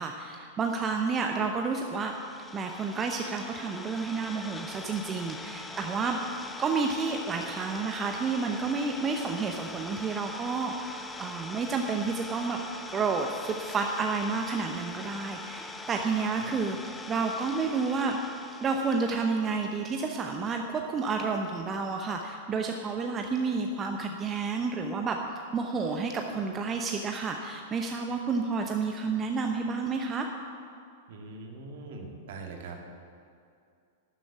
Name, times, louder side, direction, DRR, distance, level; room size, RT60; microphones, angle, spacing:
voice 1, 0.0-2.1 2.5-6.2 6.6-12.6 12.9-18.2 18.6-25.2 25.5-30.3, right 4 dB, 25° right, 3 dB, 0.9 m, -30 dB
Idling, 1.6-19.4, left 2 dB, 10° left, 0.9 m, -42 dB
voice 2, 31.1-32.8, right 3 dB, 55° right, 2 dB, 2.1 m, -42 dB
12.5 x 7.5 x 9.6 m, 2.4 s
figure-of-eight pair, 95°, 0 cm